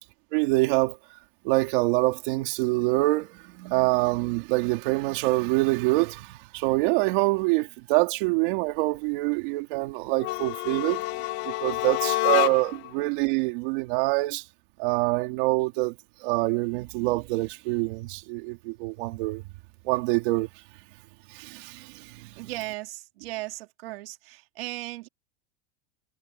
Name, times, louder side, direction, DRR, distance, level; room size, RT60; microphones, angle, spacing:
voice 1, 0.3-1.0 1.4-11.0 11.4-14.4 14.8-15.9 16.2-19.4 19.8-20.5 21.3-22.3, right 23 dB, 60° right, 3.2 m, -25 dB
sound 1, 10.1-12.9, left 20 dB, 40° left, 0.6 m, -28 dB
voice 2, 22.4-25.1, right 19 dB, 80° right, 3.0 m, -37 dB
supercardioid pair, 170°, 29 cm